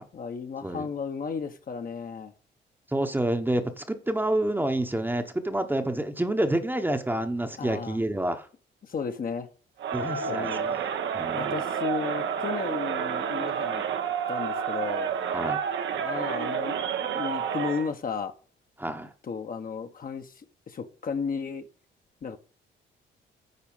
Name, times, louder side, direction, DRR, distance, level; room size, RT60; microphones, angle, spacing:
voice 1, 0.1-2.3 7.6-8.0 8.8-9.5 10.3-10.8 11.3-13.8 14.3-15.1 16.0-18.3 19.2-21.7 22.2-22.4, left 5 dB, 45° left, 1.1 m, -34 dB
voice 2, 2.9-8.5 9.9-11.6 15.3-15.6 18.8-19.1, right 1 dB, 10° right, 1.0 m, -28 dB
Crowd, 9.8-17.9, right 7 dB, 70° right, 1.0 m, -30 dB
9.6 x 4.2 x 5.6 m
cardioid pair, 90°, 20 cm